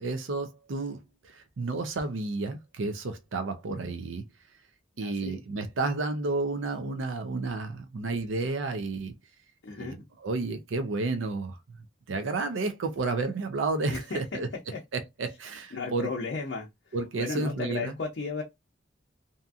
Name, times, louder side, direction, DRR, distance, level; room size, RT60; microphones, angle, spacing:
voice 1, 0.0-4.2 5.0-9.1 9.8-9.9 10.2-11.6 12.1-14.5 14.9-16.1 16.9-17.9, right 3 dB, 80° right, 0.5 m, -31 dB
voice 2, 5.0-5.4 9.6-10.0 13.9-14.4 14.7-14.8 15.7-18.4, left 4 dB, 70° left, 0.5 m, -35 dB
2.7 x 2.5 x 2.3 m
head